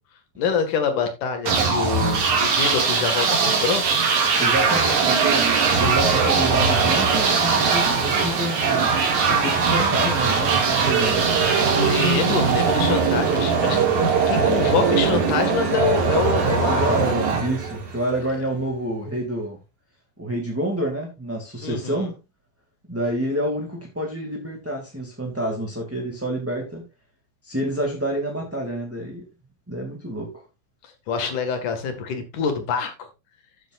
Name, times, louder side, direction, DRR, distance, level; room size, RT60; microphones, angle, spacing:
voice 1, 0.4-4.0 11.7-13.8 14.3-17.2 21.6-22.1 31.1-32.9, left 6 dB, 75° left, 3.4 m, -25 dB
sound 1, 1.5-18.2, right 5 dB, 70° right, 3.6 m, -20 dB
voice 2, 4.4-5.4 5.8-8.9 9.2-11.2 16.6-19.6 20.2-22.1 22.9-26.8 27.4-29.2 29.7-30.4, right 1 dB, 5° right, 1.8 m, -28 dB
14.5 x 8.0 x 2.5 m
omnidirectional pair, 3.6 m